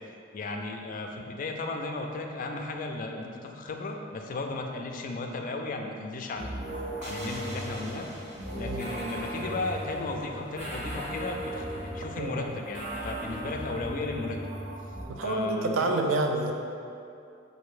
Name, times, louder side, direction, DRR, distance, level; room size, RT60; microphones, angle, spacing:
voice 1, 0.3-6.5 7.0-8.1 8.5-14.4 15.2-16.0, left 2 dB, 45° left, 3 dB, 0.4 m, -35 dB
sound 1, 6.3-15.0, equal, 40° right, 1.3 m, -37 dB
voice 2, 12.2-12.5 15.1-16.5, right 2 dB, 90° right, 3 dB, 0.4 m, -28 dB
4.2 x 2.6 x 4.8 m, 2.6 s
head